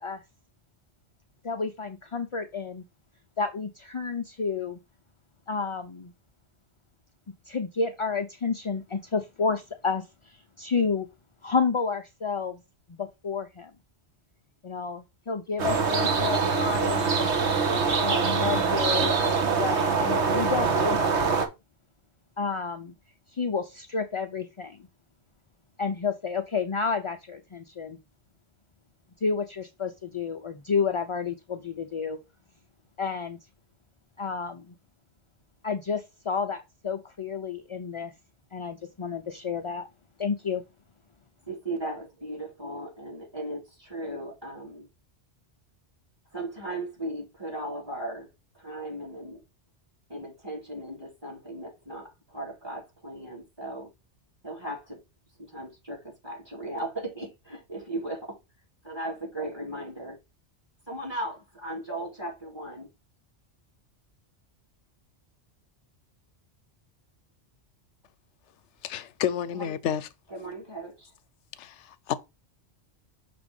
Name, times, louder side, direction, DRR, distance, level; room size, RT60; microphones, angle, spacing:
voice 1, 1.4-2.8 3.4-4.8 5.5-6.1 7.5-11.1 11.4-12.6 12.9-13.7 14.6-17.3 18.0-21.5 22.4-22.9 23.3-24.8 25.8-28.0 29.2-32.2 33.0-33.4 34.2-34.7 35.6-38.1 38.5-39.9 40.2-40.6, left 5 dB, 45° left, 0.4 m, -30 dB
sound 1, 15.6-21.5, right 4 dB, 75° right, 1.4 m, -24 dB
voice 2, 41.5-44.9 46.3-48.3 48.5-49.4 50.1-53.9 54.4-55.0 55.4-58.4 58.8-60.2 60.9-62.9 69.5-69.7 70.3-71.1, right 1 dB, 20° right, 2.8 m, -37 dB
voice 3, 68.8-70.1 71.6-72.1, left 9 dB, 85° left, 0.9 m, -30 dB
6.0 x 3.4 x 5.2 m
omnidirectional pair, 1.2 m